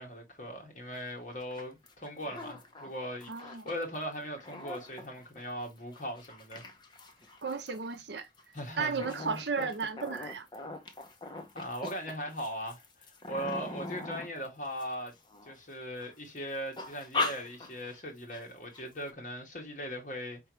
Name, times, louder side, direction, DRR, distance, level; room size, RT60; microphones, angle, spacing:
voice 1, 0.0-6.7 8.5-9.0 11.5-15.1 15.4-20.4, equal, 45° left, 1.5 m, -39 dB
sound 1, 0.9-1.0 1.3-3.8 4.2-15.6 16.0-16.4 16.7-18.0 18.3-18.4 18.7-19.1, left 2 dB, 25° left, 0.7 m, -40 dB
voice 2, 3.3-3.6 7.4-8.3 8.8-10.5, right 5 dB, 70° right, 0.7 m, -34 dB
4.6 x 3.5 x 3.0 m
head